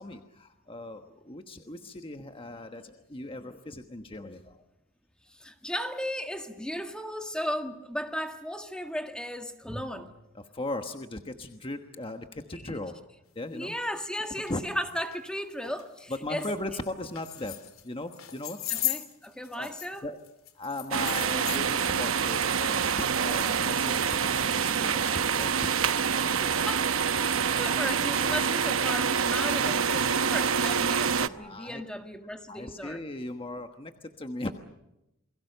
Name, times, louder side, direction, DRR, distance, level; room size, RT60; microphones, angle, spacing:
voice 1, 0.0-4.7 10.3-13.0 13.3-13.8 14.5-14.6 16.1-18.6 19.5-19.7 20.0-20.2 20.5-25.7 26.3-26.7 27.2-27.5 31.3-31.8 32.5-34.5, left 2 dB, 25° left, 6 dB, 1.3 m, -38 dB
voice 2, 5.3-10.1 12.6-12.8 13.5-16.5 18.7-20.0 26.7-27.0 27.4-33.0, equal, 5° left, 6 dB, 1.7 m, -35 dB
sound 1, 13.7-13.8 14.4-14.5 15.0-15.2 15.6-15.8 16.1-16.5 17.1-17.8 18.1-20.0 20.2-21.6, left 14 dB, 85° left, 2.9 m, -36 dB
sound 2, 20.9-31.3, right 6 dB, 75° right, 0.9 m, -26 dB
29.0 x 22.0 x 6.8 m, 0.88 s
head